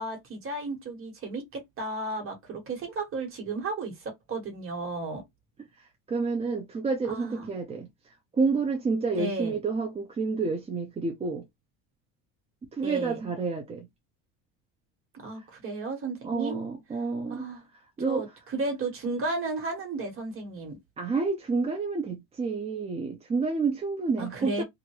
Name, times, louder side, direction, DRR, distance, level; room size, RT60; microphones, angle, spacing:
voice 1, 0.0-5.2 7.1-7.5 9.2-9.5 12.8-13.2 15.1-16.6 17.3-17.6 18.1-18.3 18.5-20.8 24.2-24.6, right 3 dB, 35° right, 1.4 m, -33 dB
voice 2, 5.8-11.5 12.7-13.9 15.3-15.5 16.2-17.5 17.7-18.2 21.0-24.6, right 4 dB, 15° right, 0.5 m, -29 dB
2.8 x 2.5 x 3.0 m
cardioid pair, 135°, 39 cm